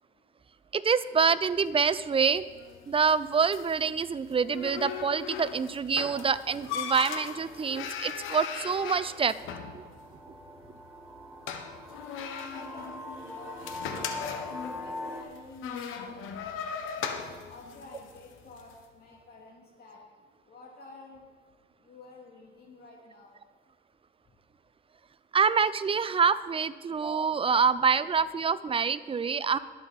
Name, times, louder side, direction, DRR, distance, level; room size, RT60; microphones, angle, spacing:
voice 1, 0.7-2.4 2.9-9.3 9.7-9.8 25.3-29.6, right 6 dB, 30° right, 15 dB, 0.5 m, -26 dB
sound 1, 1.5-18.8, left 7 dB, 90° left, 1.1 m, -39 dB
sound 2, 6.2-15.2, left 1 dB, 10° right, 1.5 m, -44 dB
voice 2, 12.5-16.4 16.7-17.1 17.5-20.0 20.5-21.2 21.8-23.4, left 2 dB, 55° left, -2 dB, 2.4 m, -50 dB
20.5 x 7.1 x 4.1 m, 1.5 s
cardioid pair, 90°, 20 cm